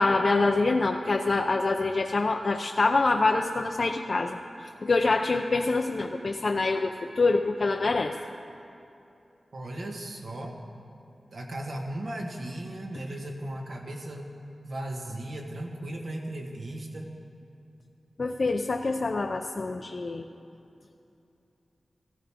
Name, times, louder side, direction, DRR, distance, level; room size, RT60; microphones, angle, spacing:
voice 1, 0.0-8.1 18.2-20.2, left 3 dB, 50° left, 3 dB, 0.5 m, -25 dB
voice 2, 9.5-10.6 11.3-14.3 14.6-17.1, right 1 dB, 70° right, 0 dB, 1.5 m, -36 dB
15.5 x 14.0 x 3.6 m, 2.8 s
wide cardioid pair, 95°, 0 cm